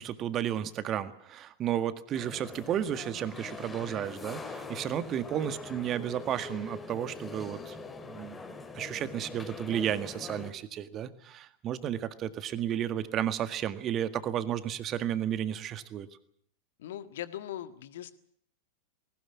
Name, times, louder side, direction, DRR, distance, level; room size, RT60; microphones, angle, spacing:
voice 1, 0.0-7.8 8.1-16.1, right 10 dB, 30° right, 12 dB, 1.8 m, -33 dB
sound 1, 2.1-10.5, left 4 dB, 15° left, 2.9 m, -43 dB
voice 2, 16.8-18.1, left 12 dB, 55° left, 12 dB, 1.6 m, -40 dB
20.0 x 18.5 x 9.7 m, 0.65 s
figure-of-eight pair, 90°, 0 cm